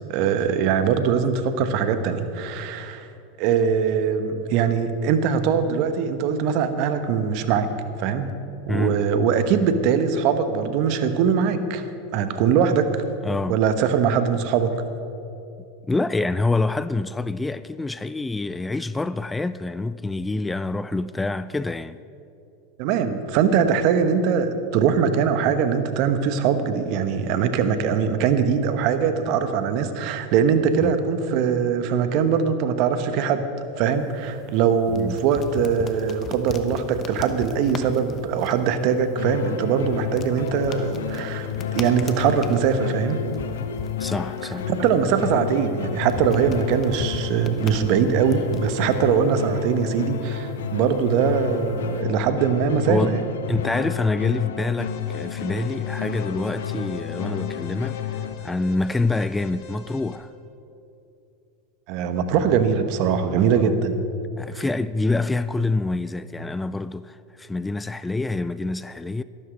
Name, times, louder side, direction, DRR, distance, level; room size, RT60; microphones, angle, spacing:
voice 1, 0.1-3.1 3.4-7.7 8.0-8.3 8.7-11.9 12.1-13.0 13.5-14.8 22.8-33.5 33.8-43.3 44.7-53.2 61.9-64.0 64.5-64.6, right 7 dB, 55° right, 1.1 m, -22 dB
voice 2, 8.7-9.0 13.2-13.6 15.9-22.0 30.8-30.9 34.9-35.2 44.0-44.7 52.9-53.2 53.5-60.3 63.6-63.7 64.4-69.2, left 3 dB, 10° left, 0.3 m, -26 dB
sound 1, 33.8-52.0, left 5 dB, 35° left, 1.0 m, -40 dB
sound 2, 39.2-58.3, left 9 dB, 80° left, 0.8 m, -31 dB
Alarm, 54.8-60.2, left 5 dB, 55° left, 1.9 m, -45 dB
12.5 x 12.5 x 5.2 m
hypercardioid pair, 95°, 0 cm